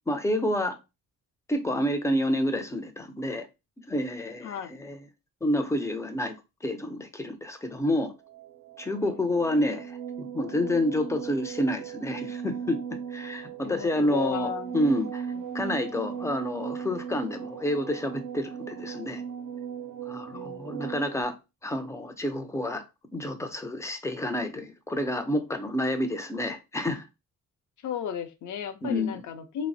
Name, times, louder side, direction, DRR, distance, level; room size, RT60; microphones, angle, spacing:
voice 1, 0.1-0.8 1.5-3.5 3.9-5.0 5.4-6.3 6.6-8.1 8.8-12.8 13.1-15.3 15.5-19.2 20.1-21.3 21.6-22.8 23.1-27.0 28.8-29.2, left 1 dB, 10° left, 0.3 m, -29 dB
voice 2, 4.4-4.8 9.0-9.4 13.6-14.8 20.3-20.9 27.8-29.7, left 8 dB, 65° left, 0.6 m, -35 dB
sound 1, 8.2-21.2, right 8 dB, 70° right, 0.5 m, -38 dB
3.2 x 2.0 x 2.5 m
cardioid pair, 105°, 32 cm